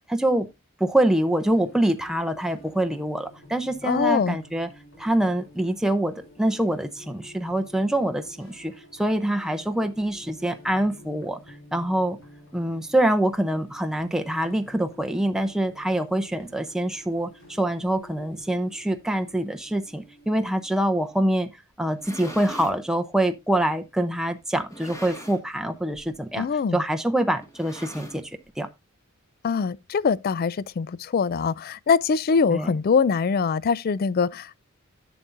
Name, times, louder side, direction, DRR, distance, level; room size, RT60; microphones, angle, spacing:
voice 1, 0.1-0.5 0.8-4.7 5.0-11.4 11.7-12.2 12.5-21.5 21.8-26.5 26.7-28.3 28.6-28.7 32.5-32.7, right 1 dB, 5° right, 0.6 m, -25 dB
sound 1, 0.9-20.7, left 1 dB, 65° left, 5.2 m, -50 dB
voice 2, 3.8-4.4 26.4-26.8 29.4-34.6, left 5 dB, 45° left, 0.3 m, -23 dB
sound 2, 21.8-22.8 23.6-23.7 24.6-25.6 25.9-26.2 26.4-26.5 27.4-28.5, equal, 15° left, 1.6 m, -41 dB
11.0 x 6.9 x 2.5 m
head